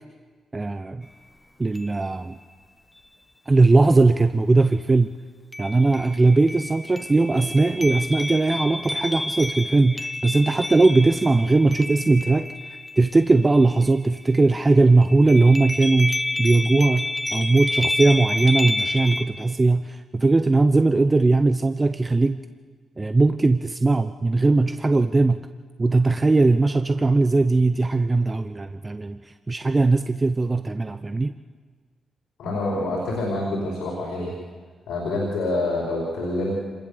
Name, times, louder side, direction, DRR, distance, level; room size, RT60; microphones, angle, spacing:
voice 1, 0.5-1.1 1.6-2.4 3.5-5.1 5.6-12.5 13.0-22.4 23.0-25.5 25.8-31.3, right 3 dB, 30° right, 10 dB, 0.9 m, -19 dB
sound 1, 1.0-1.1 1.8-2.3 5.5-14.7 15.0-19.3, left 1 dB, 15° left, 1.6 m, -30 dB
voice 2, 32.4-34.3 34.9-36.6, left 2 dB, 80° left, -4 dB, 5.0 m, -26 dB
25.5 x 20.0 x 7.1 m, 1.5 s
hypercardioid pair, 45°, 0 cm